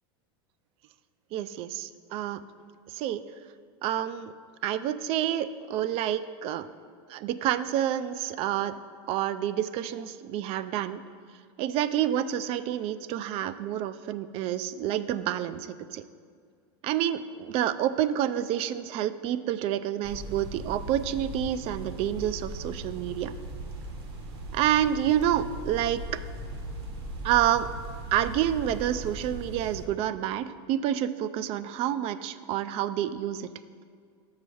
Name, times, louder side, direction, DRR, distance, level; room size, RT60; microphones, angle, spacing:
voice 1, 1.3-2.4 2.9-3.2 3.8-4.3 4.6-6.7 7.1-8.8 9.1-11.0 11.6-16.0 16.8-23.3 24.5-26.2 27.2-27.7 28.1-33.5, right 11 dB, 45° right, 14 dB, 0.3 m, -28 dB
sound 1, 20.0-29.9, right 1 dB, 75° right, 1.4 m, -39 dB
6.8 x 4.8 x 6.9 m, 2.1 s
supercardioid pair, 125°, 14 cm